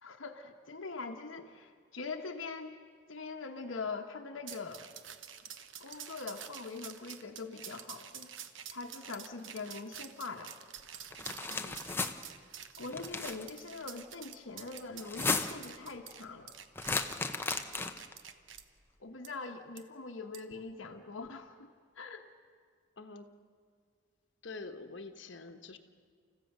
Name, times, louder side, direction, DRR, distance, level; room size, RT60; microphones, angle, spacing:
voice 1, 0.0-2.8 3.1-4.9 5.8-8.3 8.7-10.5 12.8-16.5 19.0-21.7 21.9-22.2, left 4 dB, 90° left, 3 dB, 1.0 m, -43 dB
sound 1, 4.5-18.6 19.2-19.3 19.8-19.9 20.3-20.5, right 8 dB, 85° right, 1.0 m, -48 dB
sound 2, 11.1-12.1 12.9-13.4 15.0-15.7 16.8-18.1, left 3 dB, 10° left, 0.7 m, -34 dB
voice 2, 11.5-11.9 23.0-23.3 24.4-25.8, left 3 dB, 70° left, 6 dB, 1.2 m, -46 dB
30.0 x 15.0 x 6.6 m, 2.1 s
head